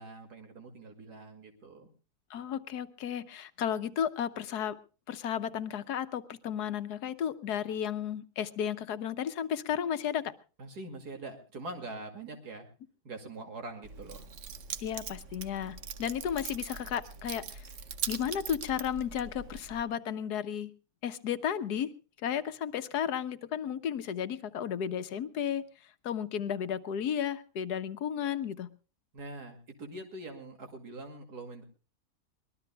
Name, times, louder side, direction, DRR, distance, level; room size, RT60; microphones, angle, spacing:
voice 1, 0.0-1.9 10.6-12.7 13.0-14.3 29.1-31.6, right 2 dB, 80° right, 5 dB, 2.9 m, -44 dB
voice 2, 2.3-4.8 5.1-10.3 14.8-17.6 18.1-20.7 21.0-21.9 22.2-25.6 26.0-28.7, left 9 dB, 80° left, 12 dB, 1.5 m, -33 dB
Keys jangling, 13.8-19.8, right 6 dB, 55° right, 1.1 m, -41 dB
23.5 x 20.0 x 2.3 m, 0.34 s
omnidirectional pair, 1.7 m